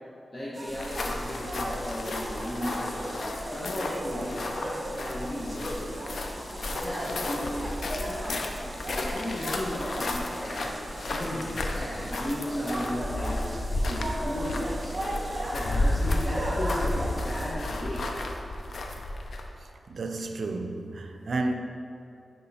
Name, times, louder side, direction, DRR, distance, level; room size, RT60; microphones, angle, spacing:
voice 1, 0.3-3.1 3.5-6.1 6.7-8.4 8.9-10.7 11.0-13.6 13.8-14.9 15.4-18.0, left 1 dB, 35° left, -8 dB, 1.2 m, -35 dB
sound 1, 0.5-17.5, right 1 dB, 40° right, 1.4 m, -37 dB
sound 2, 0.7-19.6, left 2 dB, 70° left, 0.6 m, -33 dB
voice 2, 19.9-21.5, right 2 dB, 70° right, 5 dB, 0.5 m, -31 dB
9.8 x 3.7 x 4.2 m, 2.7 s
cardioid pair, 60°, 0 cm